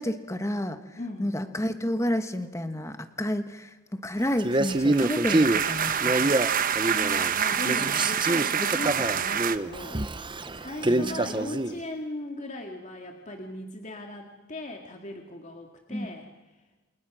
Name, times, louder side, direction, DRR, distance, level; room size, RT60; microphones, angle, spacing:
voice 1, 0.0-6.4 10.8-11.3 15.9-16.1, equal, 15° left, 9 dB, 1.3 m, -31 dB
voice 2, 1.0-1.3 6.9-10.0 10.5-16.3, left 1 dB, 35° left, 2 dB, 2.1 m, -38 dB
Male speech man speaking, 4.4-7.4 7.6-11.8, right 2 dB, 20° right, 0.8 m, -26 dB
sound 1, 4.5-9.6, right 8 dB, 40° right, 1.0 m, -27 dB
29.0 x 28.0 x 6.2 m, 1.2 s
head